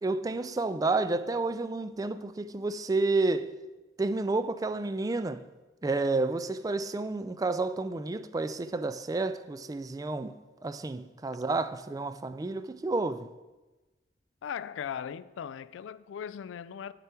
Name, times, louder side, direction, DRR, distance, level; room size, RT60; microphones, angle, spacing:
voice 1, 0.0-3.5 4.0-5.5 5.8-10.4 10.6-13.3, right 3 dB, 20° right, 0.3 m, -30 dB
voice 2, 14.4-16.9, left 8 dB, 85° left, 0.3 m, -38 dB
9.9 x 6.8 x 4.4 m
head